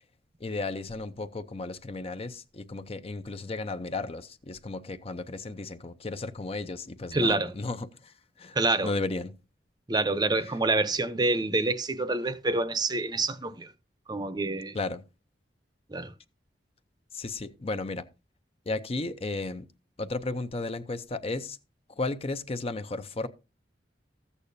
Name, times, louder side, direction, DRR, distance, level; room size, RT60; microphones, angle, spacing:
voice 1, 0.4-8.6 8.8-9.3 10.5-10.6 14.7-15.0 17.1-18.1 18.7-19.7 20.0-21.6 22.0-23.3, left 3 dB, 35° left, 0.6 m, -34 dB
voice 2, 7.1-7.5 8.5-8.9 9.9-13.7 14.1-14.8 15.9-16.1, right 2 dB, 25° right, 0.7 m, -27 dB
14.0 x 8.4 x 2.7 m
head